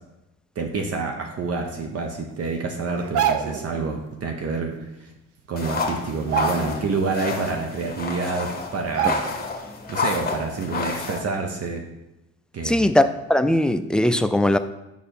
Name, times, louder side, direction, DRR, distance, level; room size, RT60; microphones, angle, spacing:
voice 1, 0.6-4.7 5.5-9.2 9.9-11.8 12.5-12.9, right 4 dB, 55° right, 3 dB, 0.9 m, -28 dB
sound 1, 3.0-3.7 5.2-5.3 5.6-5.8 6.2-7.0 7.4-7.5 8.3-8.4 8.9-9.6 9.9-10.1, right 9 dB, 85° right, 0.6 m, -26 dB
sound 2, 5.6-11.2, left 4 dB, 30° left, 1.1 m, -30 dB
voice 2, 12.6-14.6, left 1 dB, 5° left, 9 dB, 0.3 m, -19 dB
5.3 x 5.0 x 4.4 m, 0.95 s
cardioid pair, 90°, 30 cm